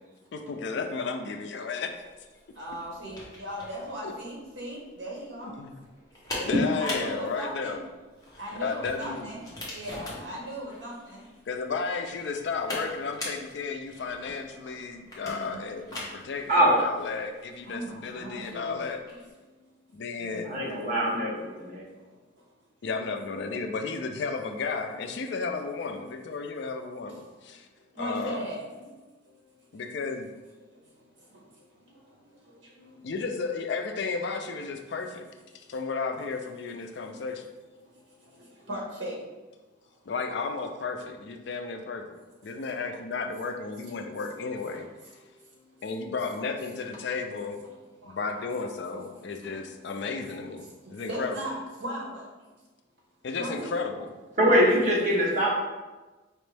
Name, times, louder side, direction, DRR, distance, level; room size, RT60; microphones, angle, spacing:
voice 1, 0.3-2.0 4.0-4.1 5.6-5.8 6.4-7.8 8.5-9.3 11.5-19.0 19.9-20.5 22.8-27.7 28.0-28.4 29.7-30.3 33.0-35.3 35.5-37.4 40.1-42.0 42.4-44.9 45.8-47.6 48.0-51.3 53.2-54.1, left 4 dB, 60° left, 6 dB, 0.4 m, -33 dB
sound 1, 1.9-19.3, left 1 dB, 20° left, 1.0 m, -42 dB
voice 2, 2.6-5.5 6.3-6.5 6.8-7.7 8.4-9.4 9.7-11.2 15.2-15.6 17.6-18.8 20.2-20.6 27.9-28.9 31.8-32.0 32.4-32.9 37.0-37.1 38.2-38.3 38.6-39.2 42.5-42.7 43.9-44.3 44.7-45.1 48.0-48.4 49.4-49.6 50.6-50.7 51.0-52.3 53.4-53.7, equal, 65° right, -3 dB, 1.2 m, -38 dB
voice 3, 16.5-16.8 20.4-21.8 54.4-55.5, equal, 40° right, -5 dB, 1.1 m, -23 dB
4.3 x 3.0 x 3.3 m, 1.2 s
head